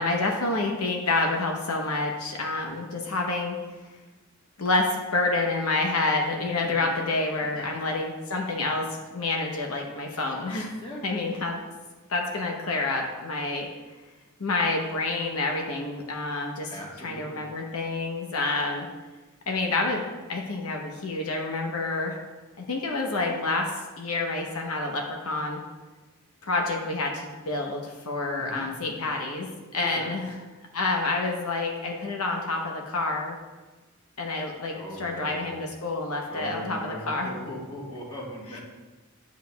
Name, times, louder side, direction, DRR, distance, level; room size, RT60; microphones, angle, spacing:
voice 1, 0.0-3.6 4.6-8.8 9.1-10.7 11.0-11.6 12.1-13.7 14.4-16.7 17.0-18.9 19.5-20.0 20.3-22.2 22.6-23.7 24.0-25.6 26.4-30.3 30.7-33.4 34.2-37.3, left 3 dB, 85° left, 1 dB, 0.9 m, -28 dB
voice 2, 16.7-17.4 28.4-29.0 29.9-30.1 34.7-35.6 36.3-38.6, equal, 25° left, -4 dB, 1.5 m, -39 dB
9.2 x 6.9 x 2.3 m, 1.2 s
head